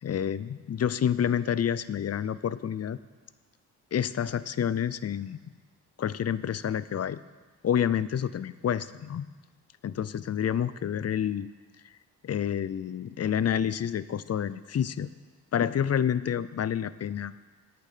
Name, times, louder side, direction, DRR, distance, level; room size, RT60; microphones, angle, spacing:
voice 1, 0.0-3.0 3.9-5.4 6.0-7.2 7.6-9.3 9.8-11.5 12.2-15.1 15.5-17.3, left 9 dB, 40° left, 17 dB, 0.5 m, -28 dB
10.5 x 8.9 x 5.7 m, 1.3 s
supercardioid pair, 50°, 41 cm